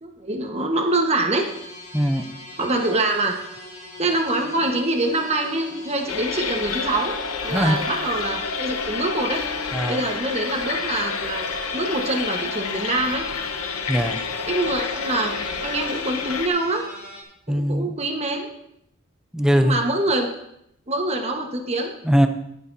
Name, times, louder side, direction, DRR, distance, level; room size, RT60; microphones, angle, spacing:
voice 1, 0.0-1.5 2.6-3.4 4.0-7.1 7.4-9.4 9.9-13.3 14.5-15.3 15.6-16.8 17.5-18.5 19.5-20.3 20.9-21.9, right 2 dB, 30° right, 2 dB, 1.2 m, -25 dB
sound 1, 1.4-17.2, left 2 dB, 55° left, 2.2 m, -41 dB
voice 2, 1.9-2.2 7.5-7.8 9.7-10.0 13.9-14.2 17.5-17.9 19.3-19.8 22.0-22.3, equal, 5° right, 7 dB, 0.5 m, -20 dB
sound 2, 6.1-16.5, left 5 dB, 85° left, 0.9 m, -29 dB
18.5 x 6.8 x 2.7 m, 0.77 s
head